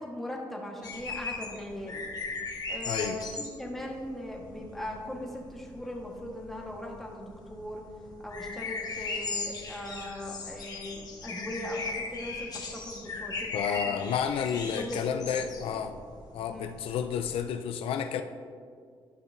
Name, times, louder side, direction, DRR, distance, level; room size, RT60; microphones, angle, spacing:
voice 1, 0.0-2.1 2.7-7.8 8.2-14.0 14.5-15.0 15.3-15.7 16.5-16.7, left 1 dB, ahead, -2 dB, 1.3 m, -39 dB
sound 1, 0.8-17.5, left 3 dB, 45° left, 1.1 m, -38 dB
voice 2, 2.8-3.2 13.5-15.9 16.3-18.2, left 8 dB, 75° left, 8 dB, 0.4 m, -31 dB
11.5 x 5.6 x 2.6 m, 2.1 s
cardioid pair, 95°, 10 cm